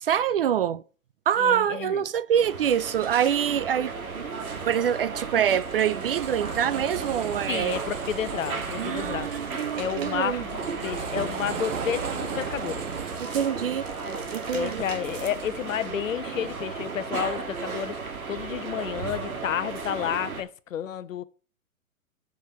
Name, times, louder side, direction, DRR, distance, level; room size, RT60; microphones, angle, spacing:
voice 1, 0.0-0.8 1.3-4.3 4.7-7.8 8.8-10.4 13.2-13.9 14.3-14.8, right 9 dB, 45° right, 0.5 m, -25 dB
voice 2, 1.4-2.0 7.5-9.3 9.8-12.9 14.5-21.2, left 10 dB, 65° left, 0.9 m, -31 dB
sound 1, 2.3-20.4, right 4 dB, 75° right, 2.1 m, -35 dB
sound 2, 4.5-15.8, right 6 dB, 60° right, 1.7 m, -38 dB
Singing, 4.6-14.2, equal, 5° left, 2.7 m, -55 dB
7.4 x 5.3 x 7.3 m
hypercardioid pair, 130°, 42 cm